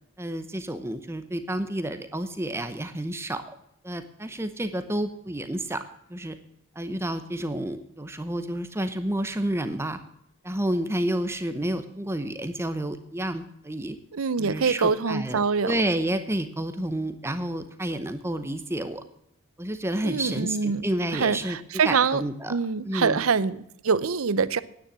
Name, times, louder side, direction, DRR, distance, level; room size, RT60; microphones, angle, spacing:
voice 1, 0.2-3.4 3.8-5.8 6.1-6.4 6.8-10.0 10.4-14.0 14.4-19.0 19.6-21.6 21.8-22.6 22.8-23.2, right 1 dB, 10° right, 0.8 m, -30 dB
voice 2, 14.1-15.7 20.0-20.8 21.1-22.2 22.5-24.6, right 5 dB, 75° right, 0.7 m, -24 dB
9.9 x 9.6 x 7.4 m
head